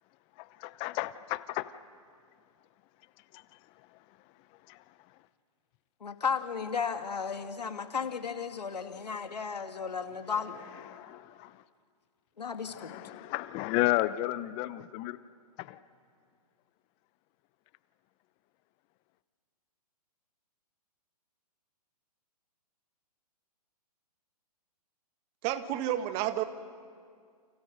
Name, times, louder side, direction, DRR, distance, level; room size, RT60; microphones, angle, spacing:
voice 1, 0.4-1.7 3.3-3.4 4.7-4.8 10.9-11.6 12.7-15.2 15.6-15.8, left 17 dB, 25° left, 0.7 m, -33 dB
voice 2, 6.0-10.6 12.4-12.9, left 6 dB, 90° left, 2.5 m, -34 dB
voice 3, 25.4-26.4, right 12 dB, 30° right, 1.6 m, -30 dB
29.5 x 29.0 x 6.6 m
hypercardioid pair, 140°, 20 cm